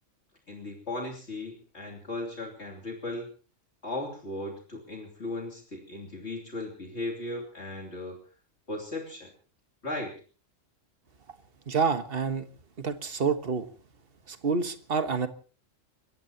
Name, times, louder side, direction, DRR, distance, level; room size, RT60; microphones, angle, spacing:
voice 1, 0.5-3.3 3.8-8.2 8.7-9.3 9.8-10.2, left 2 dB, 60° left, -1 dB, 3.3 m, -37 dB
voice 2, 11.7-12.5 12.8-13.7 14.3-15.3, right 5 dB, 50° right, 9 dB, 1.6 m, -28 dB
30.0 x 16.0 x 2.9 m, 0.38 s
omnidirectional pair, 1.3 m